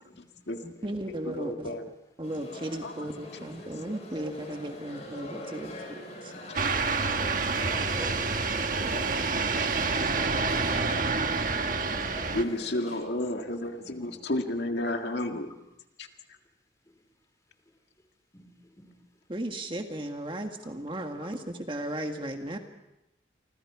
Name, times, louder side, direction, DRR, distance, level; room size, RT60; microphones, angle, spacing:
voice 1, 0.1-0.6 1.3-1.9 2.8-3.4 7.6-7.7 8.7-9.7 10.8-11.1 12.3-15.5 16.0-16.1, left 1 dB, 70° left, 4 dB, 1.9 m, -33 dB
voice 2, 0.6-1.7 2.2-6.3 8.0-8.1 10.3-10.5 19.3-22.6, right 1 dB, 25° right, 4 dB, 1.8 m, -36 dB
sound 1, 2.2-13.0, left 1 dB, 40° left, 7.9 m, -43 dB
voice 3, 3.6-3.9 5.1-5.8 6.3-7.4 13.8-14.2 15.5-15.6 18.3-18.9 20.6-20.7 21.9-22.0, equal, 20° left, 4 dB, 4.4 m, -55 dB
sound 2, 6.5-12.4, right 4 dB, 45° right, 1.4 m, -28 dB
29.0 x 25.5 x 4.9 m, 0.87 s
head